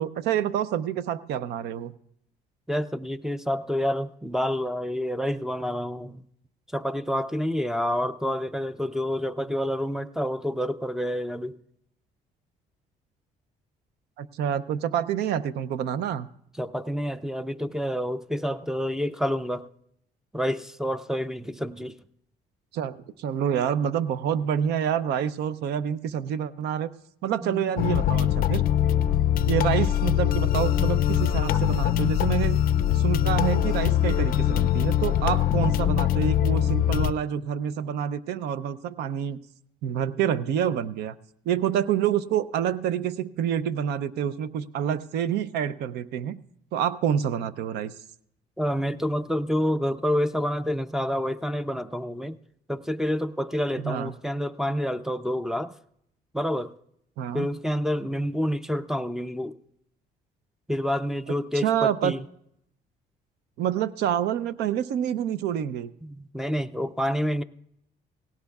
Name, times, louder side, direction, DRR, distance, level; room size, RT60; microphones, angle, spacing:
voice 1, 0.0-1.9 14.2-16.3 22.7-26.9 27.2-28.6 29.5-32.6 32.9-39.4 39.8-41.1 41.5-46.4 46.7-47.9 53.8-54.1 57.2-57.5 61.6-62.1 63.6-65.9, right 9 dB, 75° right, 0.6 m, -27 dB
voice 2, 2.7-6.2 6.7-11.6 16.6-19.6 20.3-22.0 27.4-28.1 48.6-52.4 52.7-55.8 56.3-56.8 57.3-59.6 60.7-62.2 66.0-67.4, equal, 5° right, 0.4 m, -28 dB
sound 1, 27.8-37.1, left 11 dB, 60° left, 0.4 m, -22 dB
18.0 x 17.0 x 2.3 m
cardioid pair, 110°, 17 cm